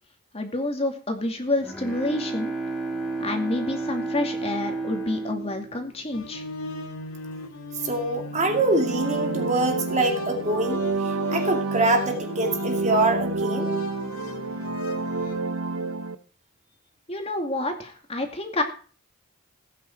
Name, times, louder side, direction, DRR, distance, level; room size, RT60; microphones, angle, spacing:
voice 1, 0.3-2.5 3.2-6.4 17.1-18.6, left 2 dB, 25° left, 4 dB, 2.4 m, -28 dB
Bowed string instrument, 1.3-6.8, right 3 dB, 5° left, 3.4 m, -32 dB
sound 1, 6.1-15.4, left 2 dB, 80° left, 2.2 m, -36 dB
voice 2, 7.8-13.7, right 2 dB, 35° right, 4 dB, 2.4 m, -25 dB
sound 2, 8.2-16.2, right 3 dB, 75° right, 1.3 m, -29 dB
17.0 x 9.2 x 4.5 m, 0.40 s
head